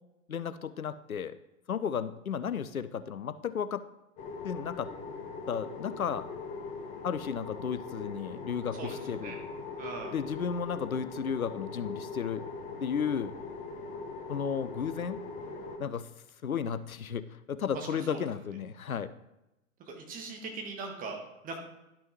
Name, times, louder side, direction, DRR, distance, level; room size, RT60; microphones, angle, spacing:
voice 1, 0.3-1.3 1.7-3.8 4.4-4.9 5.5-6.3 7.0-9.3 10.1-12.4 12.8-13.4 14.3-15.2 15.8-16.1 16.4-19.1, left 7 dB, 85° left, 13 dB, 0.6 m, -33 dB
sound 1, 4.2-15.8, left 4 dB, 20° left, 0.9 m, -41 dB
voice 2, 9.8-10.1 17.7-18.2 19.9-21.6, right 4 dB, 20° right, 3 dB, 1.3 m, -40 dB
11.5 x 6.1 x 3.1 m, 0.92 s
figure-of-eight pair, 105°, 41 cm